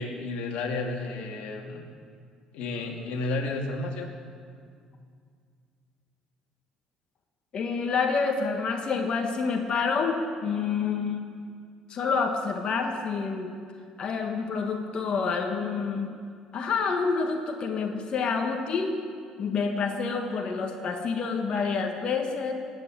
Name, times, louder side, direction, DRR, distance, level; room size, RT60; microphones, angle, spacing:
voice 1, 0.0-1.9 2.5-4.1, left 2 dB, 70° left, 1 dB, 2.3 m, -32 dB
voice 2, 7.5-11.2 11.9-13.5 14.0-16.1 16.5-19.0 19.4-22.5, left 5 dB, 50° left, 3 dB, 1.6 m, -28 dB
19.0 x 8.3 x 8.9 m, 2.2 s
supercardioid pair, 80°, 2 cm